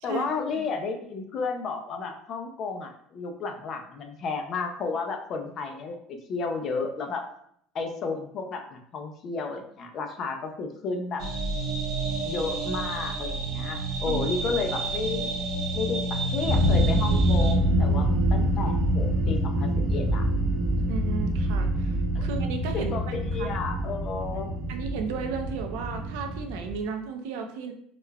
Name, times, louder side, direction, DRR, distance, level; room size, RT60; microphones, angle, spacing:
voice 1, 0.0-7.2 7.7-11.2 12.2-15.3 15.7-20.3 22.1-22.3 22.7-24.5, left 4 dB, 30° left, 4 dB, 0.4 m, -32 dB
sound 1, 11.2-17.5, right 2 dB, 55° right, 0.8 m, -30 dB
sound 2, 16.4-26.8, equal, 25° right, 0.5 m, -25 dB
voice 2, 20.9-22.9 23.4-23.5 24.7-27.7, right 5 dB, 75° right, 5 dB, 0.5 m, -34 dB
4.8 x 2.2 x 2.2 m, 0.68 s
cardioid pair, 170°, 0 cm